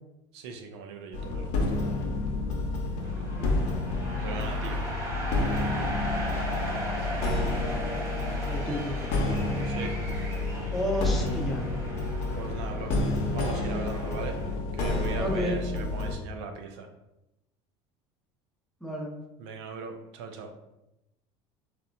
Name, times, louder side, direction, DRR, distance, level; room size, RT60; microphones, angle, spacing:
voice 1, 0.3-1.8 4.2-4.8 5.5-5.8 9.6-9.9 12.4-13.0 13.3-14.4 14.7-16.9 19.4-20.5, right 4 dB, 80° right, 4 dB, 0.4 m, -39 dB
sound 1, 1.1-16.2, left 2 dB, 60° left, 0.5 m, -29 dB
sound 2, 3.0-14.6, right 1 dB, 20° right, 0.9 m, -38 dB
voice 2, 8.5-9.1 10.7-11.7 15.2-15.6 18.8-19.2, equal, ahead, -2 dB, 0.6 m, -31 dB
2.9 x 2.1 x 2.4 m, 0.89 s
supercardioid pair, 100°, 14 cm